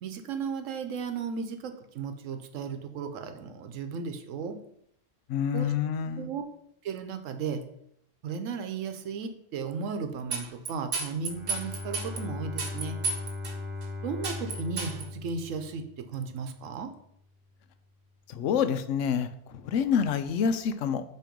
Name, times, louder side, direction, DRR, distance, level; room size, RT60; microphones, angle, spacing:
voice 1, 0.0-4.6 5.5-5.7 6.2-6.4 6.8-7.6 8.2-13.0 14.0-16.9, right 5 dB, 90° right, 8 dB, 1.1 m, -35 dB
voice 2, 5.3-6.3 18.3-21.0, left 7 dB, 80° left, 11 dB, 0.9 m, -27 dB
sound 1, 10.3-12.2 12.6-13.5 13.8-13.9 14.2-15.0, right 4 dB, 60° right, 1.2 m, -32 dB
Bowed string instrument, 11.2-16.1, left 3 dB, 25° right, 0.9 m, -38 dB
7.5 x 3.1 x 5.1 m, 0.73 s
omnidirectional pair, 1.3 m